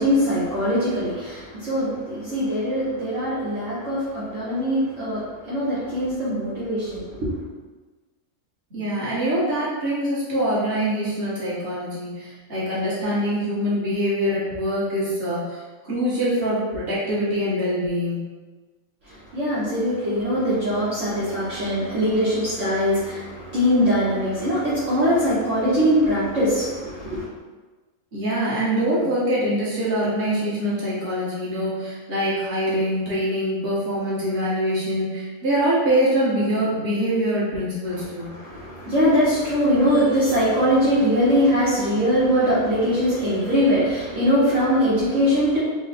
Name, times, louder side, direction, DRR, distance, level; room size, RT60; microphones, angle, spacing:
voice 1, 0.0-7.3 19.0-27.3 37.9-45.6, equal, 65° right, -10 dB, 1.3 m, -22 dB
voice 2, 8.7-15.6 15.9-18.2 28.1-38.3, equal, 45° right, -9 dB, 1.6 m, -24 dB
4.3 x 2.1 x 4.1 m, 1.3 s
omnidirectional pair, 1.4 m